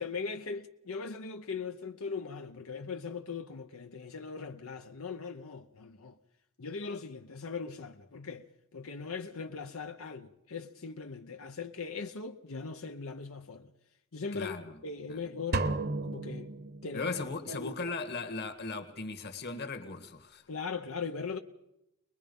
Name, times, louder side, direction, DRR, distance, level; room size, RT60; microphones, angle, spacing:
voice 1, 0.0-6.2 6.6-8.4 8.7-13.7 14.1-14.6 14.8-15.7 16.0-16.5 16.8-17.1 17.5-17.7 20.5-21.4, left 5 dB, 90° left, 0.9 m, -39 dB
voice 2, 14.3-14.8 15.1-15.2 16.9-20.5, left 3 dB, 50° left, 1.7 m, -38 dB
sound 1, 15.5-17.3, right 3 dB, 50° right, 1.0 m, -34 dB
22.5 x 21.0 x 5.4 m
head